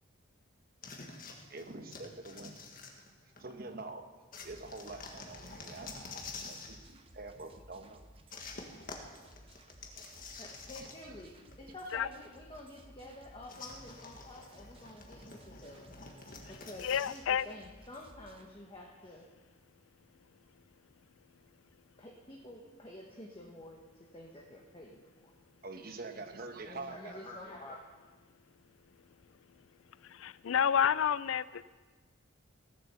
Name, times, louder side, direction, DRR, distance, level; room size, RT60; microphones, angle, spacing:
sound 1, 0.8-3.5 4.3-6.8 8.3-11.2 11.5-11.6 13.5-17.3, left 4 dB, 45° left, 1.6 m, -48 dB
voice 1, 1.5-2.5 3.4-4.0 4.4-8.1 10.0-10.1 10.8-11.4 11.8-12.0 25.6-27.1, right 3 dB, 45° right, 6 dB, 1.2 m, -46 dB
sound 2, 4.4-18.4, right 1 dB, 25° right, 1.0 m, -58 dB
voice 2, 10.4-15.9 16.5-19.2 22.0-25.3 26.6-27.8, left 1 dB, 25° left, -1 dB, 1.2 m, -49 dB
voice 3, 16.8-17.5 30.1-31.7, left 8 dB, 75° left, 18 dB, 0.4 m, -30 dB
17.0 x 7.6 x 6.8 m, 1.4 s
head